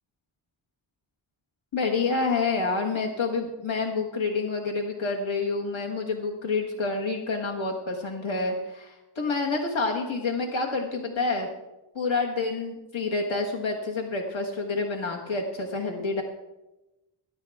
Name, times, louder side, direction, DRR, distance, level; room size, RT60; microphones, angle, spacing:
voice 1, 1.7-11.5 11.9-16.2, left 3 dB, 70° left, 0 dB, 1.5 m, -28 dB
21.0 x 11.0 x 3.5 m, 1.0 s
wide cardioid pair, 50°, 49 cm